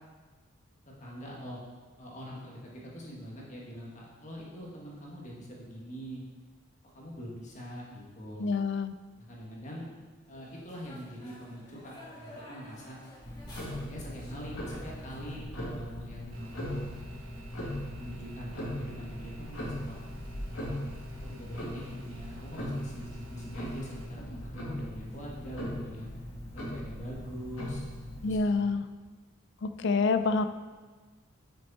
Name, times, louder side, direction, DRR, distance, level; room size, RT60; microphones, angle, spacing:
voice 1, 1.0-1.6 2.0-6.2 6.9-8.5 9.2-9.9 10.3-13.0 13.8-16.9 17.9-20.0 20.6-20.8 21.2-26.1 26.5-27.8 28.2-28.7, equal, 35° left, -3 dB, 1.7 m, -43 dB
voice 2, 8.4-8.9 28.2-28.8 29.6-30.4, left 4 dB, 55° left, 11 dB, 0.4 m, -27 dB
sound 1, 10.2-15.4, left 1 dB, 20° left, 2.0 m, -52 dB
Tick-tock, 13.2-28.4, equal, 85° left, 2.1 m, -39 dB
sound 2, 16.3-24.0, right 1 dB, 75° right, 1.4 m, -53 dB
8.7 x 6.4 x 4.2 m, 1.3 s
head